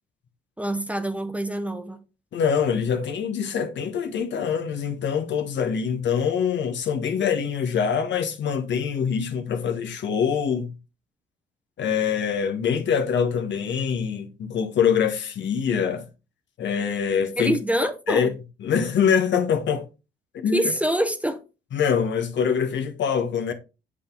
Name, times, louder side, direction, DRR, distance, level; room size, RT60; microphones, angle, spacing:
voice 1, 0.6-2.0 17.4-18.3 20.5-21.4, right 1 dB, 5° right, 0.8 m, -25 dB
voice 2, 2.3-10.7 11.8-16.0 16.6-17.6 18.1-18.3 18.6-19.8 20.3-20.6 21.7-23.5, left 7 dB, 65° left, 1.3 m, -24 dB
7.0 x 5.2 x 3.8 m
cardioid pair, 90°, 20 cm